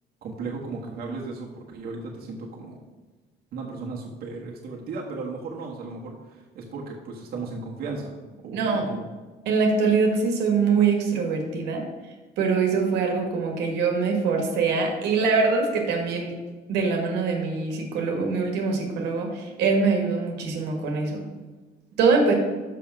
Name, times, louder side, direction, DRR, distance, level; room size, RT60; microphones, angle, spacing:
voice 1, 0.2-2.8 3.5-8.2 8.4-9.0, right 3 dB, 65° right, -2 dB, 1.4 m, -35 dB
voice 2, 8.5-8.9 9.4-16.3 16.7-21.2 22.0-22.3, right 4 dB, 85° right, 1 dB, 1.6 m, -23 dB
6.1 x 5.8 x 5.9 m, 1.3 s
cardioid pair, 110°, 17 cm